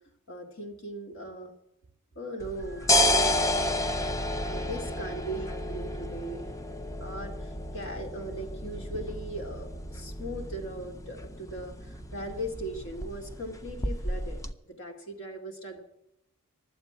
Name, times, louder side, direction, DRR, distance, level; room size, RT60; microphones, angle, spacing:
voice 1, 0.3-1.5 2.2-3.2 4.5-6.5 7.0-14.4 14.6-15.8, right 1 dB, 65° left, 3 dB, 2.5 m, -39 dB
sound 1, 2.4-14.5, left 1 dB, 15° left, 0.5 m, -31 dB
12.0 x 8.0 x 9.2 m, 0.83 s
head